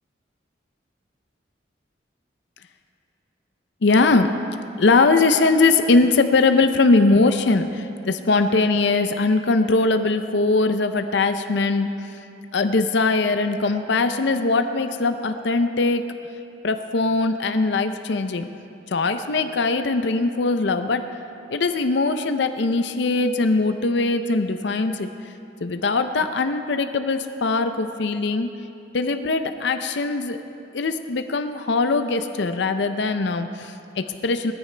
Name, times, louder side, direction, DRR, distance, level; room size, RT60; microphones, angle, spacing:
voice 1, 3.8-4.3 4.8-11.9 12.5-16.1 16.6-18.5 18.9-21.0 21.5-25.1 25.6-28.5 28.9-30.4 30.7-34.5, left 3 dB, 65° left, 8 dB, 0.6 m, -21 dB
20.0 x 14.0 x 3.3 m, 2.7 s
head